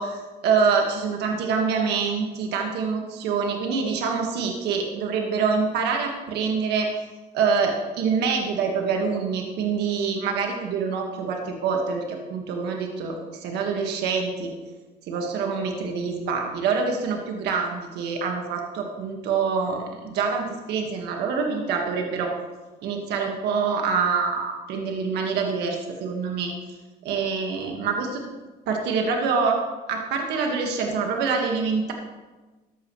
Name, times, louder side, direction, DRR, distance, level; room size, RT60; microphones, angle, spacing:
voice 1, 0.0-6.9 7.3-14.5 15.1-22.3 22.8-26.5 27.0-28.3 28.7-29.6 29.9-31.9, right 5 dB, 80° right, 2 dB, 1.7 m, -25 dB
14.0 x 11.0 x 3.2 m, 1.2 s
cardioid pair, 110°, 17 cm